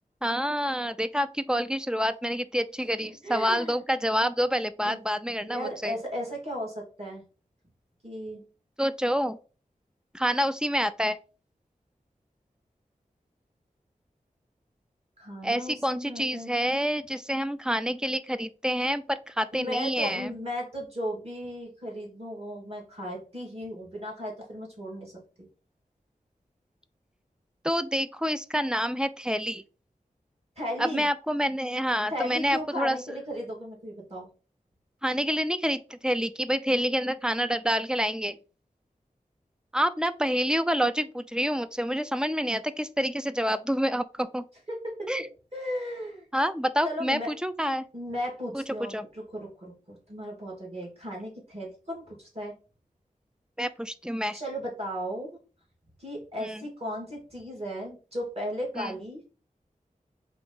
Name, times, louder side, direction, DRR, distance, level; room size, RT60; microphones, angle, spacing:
voice 1, 0.2-5.9 8.8-9.4 10.1-11.2 15.4-20.3 27.6-29.6 30.8-33.2 35.0-38.4 39.7-44.4 45.1-45.2 46.3-47.9 48.5-48.6 48.9-49.0 53.6-54.4 56.4-56.6 58.8-58.9, equal, 5° right, 0.3 m, -27 dB
voice 2, 3.2-3.8 4.8-5.0 5.4-7.2 8.0-8.4 15.2-16.5 19.5-25.1 30.6-31.1 32.1-34.3 44.7-45.2 45.5-46.3 46.8-47.3 47.9-52.5 54.3-55.4 56.0-59.2, equal, 45° right, 2.2 m, -36 dB
3.8 x 3.4 x 3.8 m
wide cardioid pair, 85°, 14 cm